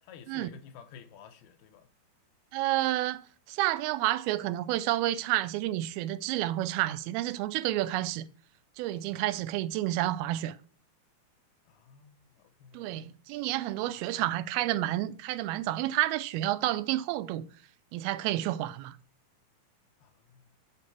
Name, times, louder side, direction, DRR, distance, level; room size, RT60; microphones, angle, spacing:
voice 1, 0.0-1.9 11.7-13.1 14.2-14.3 20.0-20.5, left 7 dB, 85° left, 2.9 m, -52 dB
voice 2, 2.5-8.3 8.8-10.6 12.7-17.4 17.9-19.0, right 15 dB, 85° right, 2.4 m, -30 dB
8.7 x 4.6 x 5.8 m
omnidirectional pair, 4.4 m